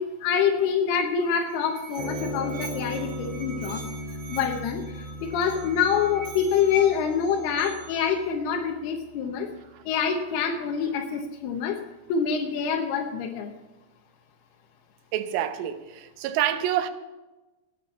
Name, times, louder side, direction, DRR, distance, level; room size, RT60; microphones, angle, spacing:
voice 1, 0.0-3.8 4.3-9.5 9.9-11.8 12.1-13.5, left 7 dB, 70° left, 2.6 m, -26 dB
Musical instrument, 1.2-8.1, right 5 dB, 55° right, 5.3 m, -44 dB
sound 1, 2.0-8.6, equal, 35° right, 2.2 m, -37 dB
voice 2, 15.1-16.9, right 11 dB, 80° right, 3.3 m, -27 dB
19.5 x 9.5 x 4.2 m
omnidirectional pair, 5.6 m